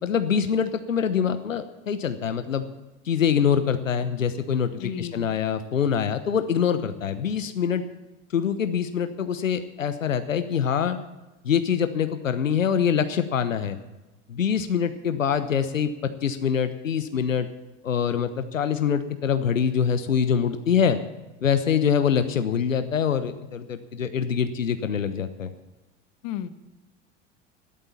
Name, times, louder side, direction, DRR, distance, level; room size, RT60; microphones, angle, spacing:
voice 1, 0.0-2.6 3.0-7.8 8.3-11.0 11.4-13.8 14.3-15.9 16.2-17.5 17.8-21.0 21.4-25.5, left 7 dB, 85° left, 10 dB, 1.0 m, -24 dB
voice 2, 4.8-5.3 26.2-26.5, left 10 dB, 55° left, 13 dB, 1.2 m, -33 dB
12.5 x 12.5 x 7.1 m, 1.1 s
hypercardioid pair, 80°, 38 cm